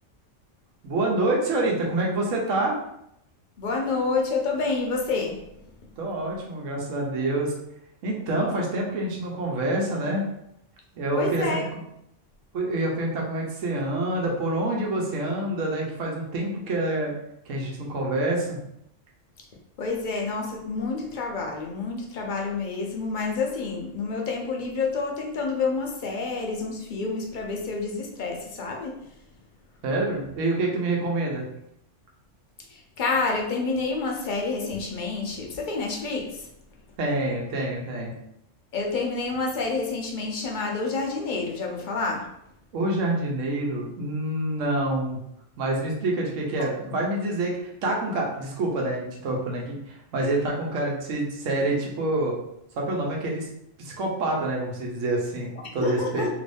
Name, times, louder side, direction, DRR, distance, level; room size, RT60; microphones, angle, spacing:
voice 1, 0.8-2.8 6.0-7.5 8.0-10.3 11.0-11.8 12.5-17.1 17.4-18.6 29.8-31.4 37.0-38.1 42.7-45.2 45.6-52.4 52.8-53.5 53.8-56.3, right 2 dB, 85° right, -2 dB, 1.1 m, -27 dB
voice 2, 3.6-5.4 11.1-11.6 19.8-28.9 32.7-36.3 38.7-42.2 55.8-56.3, left 4 dB, 50° left, 0 dB, 0.7 m, -28 dB
3.0 x 2.6 x 3.4 m, 0.77 s
omnidirectional pair, 1.3 m